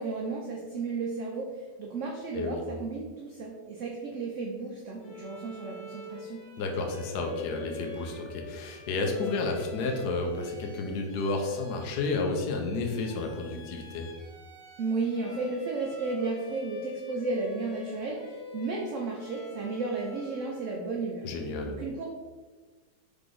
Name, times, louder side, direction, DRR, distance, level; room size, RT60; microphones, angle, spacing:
voice 1, 0.0-6.4 14.8-21.3 21.7-22.1, right 3 dB, 85° right, -1 dB, 0.6 m, -33 dB
voice 2, 2.3-2.6 6.6-14.1 21.2-21.7, left 3 dB, 65° left, 2 dB, 1.1 m, -31 dB
Bowed string instrument, 5.0-20.8, left 2 dB, 50° left, 1.8 m, -48 dB
3.8 x 3.3 x 3.8 m, 1.4 s
omnidirectional pair, 2.0 m